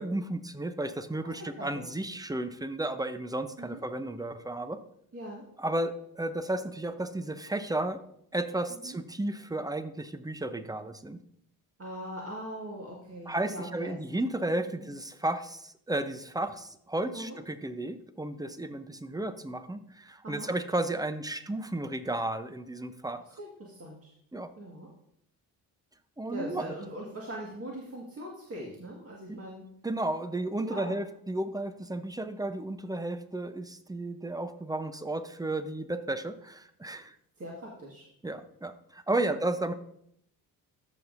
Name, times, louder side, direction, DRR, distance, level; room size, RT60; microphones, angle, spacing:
voice 1, 0.0-4.8 5.6-8.0 8.3-11.2 13.3-23.2 24.3-24.5 26.2-26.7 29.3-29.4 29.8-37.1 38.2-39.7, right 1 dB, 10° right, 11 dB, 0.7 m, -33 dB
voice 2, 1.2-1.9 3.6-3.8 5.1-5.4 8.7-9.0 11.8-13.9 14.6-14.9 17.1-17.4 20.2-20.5 23.4-24.1 24.6-24.9 26.3-29.6 30.6-31.0 37.4-38.1 39.1-39.4, right 1 dB, 30° right, -3 dB, 1.8 m, -41 dB
13.5 x 5.6 x 2.6 m, 0.73 s
hypercardioid pair, 45°, 46 cm